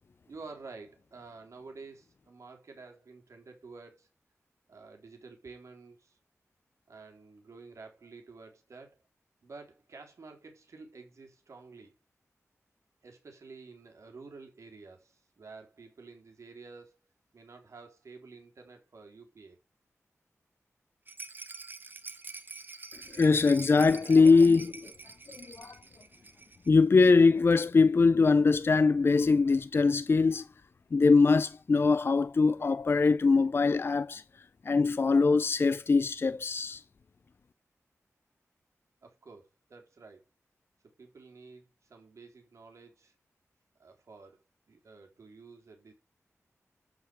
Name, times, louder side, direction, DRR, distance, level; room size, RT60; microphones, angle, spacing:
voice 1, 0.3-4.1 4.7-6.2 6.9-9.0 9.4-11.9 13.0-17.0 17.3-19.6 25.8-26.0 39.0-40.2 41.0-43.1 43.8-44.4 44.7-45.9, right 4 dB, 65° right, 3.9 m, -50 dB
Rattle, 21.1-26.8 27.0-27.1 27.4-27.5, right 3 dB, 35° right, 1.2 m, -46 dB
voice 2, 22.9-24.9 25.3-25.8 26.7-30.5 30.9-34.2 34.6-36.8, left 4 dB, 45° left, 0.5 m, -23 dB
11.5 x 4.8 x 7.9 m
wide cardioid pair, 125°, 5 cm